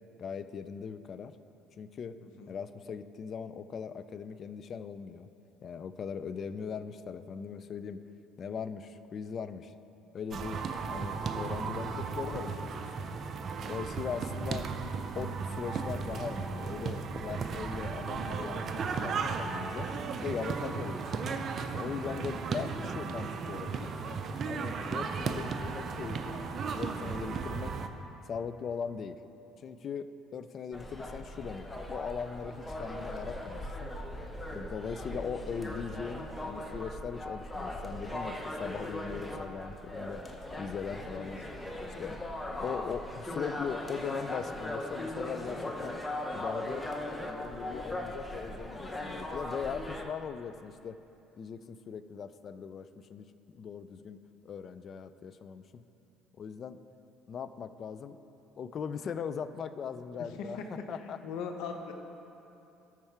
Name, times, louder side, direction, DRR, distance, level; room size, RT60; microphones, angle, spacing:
voice 1, 0.2-1.3 1.8-2.2 2.5-5.3 5.6-8.0 8.4-9.7 10.1-10.6 10.9-13.1 13.7-14.7 15.1-19.9 20.2-21.3 21.7-23.9 24.5-27.7 28.2-29.2 29.6-33.9 34.5-40.2 40.6-41.5 42.0-42.2 42.6-46.0 46.3-46.9 47.2-51.0 51.4-55.8 56.4-56.8 57.3-58.2 58.6-61.2, left 6 dB, 45° left, 12 dB, 0.4 m, -40 dB
voice 2, 2.2-2.5 34.8-35.1 41.2-41.3 60.4-60.8 61.2-61.9, left 5 dB, 75° left, 5 dB, 0.8 m, -40 dB
sound 1, 10.3-27.9, right 5 dB, 45° right, 0.5 m, -35 dB
sound 2, 30.7-50.0, left 1 dB, 15° left, 0.8 m, -39 dB
13.5 x 4.6 x 4.6 m, 2.8 s
supercardioid pair, 90°, 0 cm